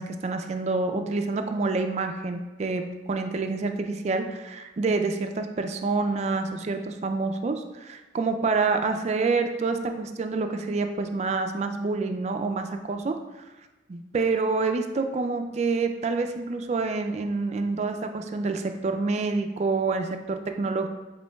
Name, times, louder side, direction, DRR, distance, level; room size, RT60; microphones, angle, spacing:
voice 1, 0.0-13.1 13.9-20.9, right 3 dB, 35° right, 6 dB, 0.3 m, -27 dB
5.2 x 4.4 x 2.2 m, 1.1 s
head